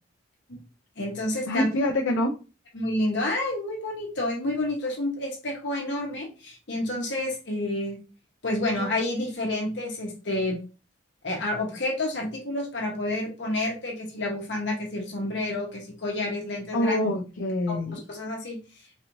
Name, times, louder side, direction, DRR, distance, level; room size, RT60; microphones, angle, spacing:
voice 1, 1.0-1.7 2.7-8.0 8.4-10.6 11.2-17.0 17.7-18.6, left 1 dB, 60° left, 0 dB, 1.0 m, -29 dB
voice 2, 1.5-2.3 16.7-18.0, left 1 dB, 75° left, 1 dB, 0.6 m, -25 dB
4.1 x 3.0 x 2.6 m, 0.33 s
head